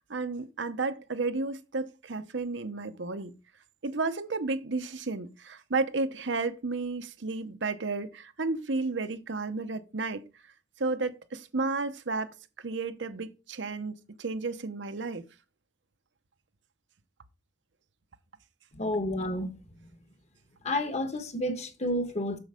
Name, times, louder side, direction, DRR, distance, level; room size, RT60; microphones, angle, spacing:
voice 1, 0.0-3.3 3.8-10.2 10.8-15.2, right 3 dB, 70° right, 0.9 m, -32 dB
voice 2, 18.7-19.9 20.6-22.4, left 1 dB, 40° left, 1.3 m, -31 dB
7.8 x 6.5 x 5.1 m
head